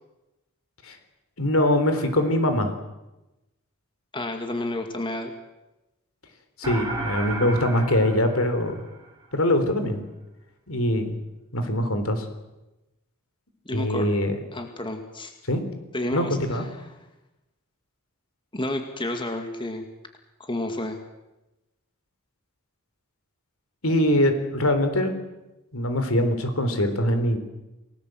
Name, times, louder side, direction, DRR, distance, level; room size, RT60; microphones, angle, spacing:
voice 1, 1.4-2.7 6.6-8.8 9.3-10.0 10.7-11.2 11.5-12.3 13.7-14.4 15.5-15.6 16.1-16.7 23.8-25.2 25.7-27.4, left 1 dB, 75° left, 8 dB, 3.8 m, -23 dB
voice 2, 4.1-5.3 13.7-14.1 14.5-15.3 15.9-16.6 18.5-19.8 20.4-21.0, left 1 dB, 25° left, 5 dB, 2.2 m, -30 dB
sound 1, 6.6-9.3, right 3 dB, 20° right, 5.1 m, -34 dB
29.0 x 19.0 x 7.9 m, 1.0 s
head